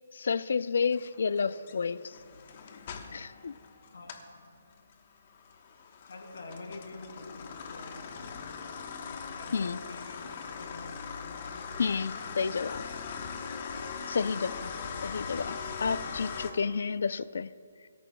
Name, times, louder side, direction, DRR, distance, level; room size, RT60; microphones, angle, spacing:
voice 1, 0.1-2.2 3.1-3.6 9.5-9.8 11.8-12.8 14.1-14.5 15.0-17.5, left 5 dB, 65° left, 15 dB, 0.4 m, -30 dB
sound 1, 0.9-4.3 4.7-16.5, left 6 dB, 40° left, 1.1 m, -41 dB
voice 2, 3.9-4.5 6.1-8.4 9.3-11.0 12.7-12.8 14.6-14.8, left 3 dB, 85° left, 2 dB, 3.1 m, -47 dB
23.5 x 13.5 x 2.3 m, 2.1 s
hypercardioid pair, 165°, 0 cm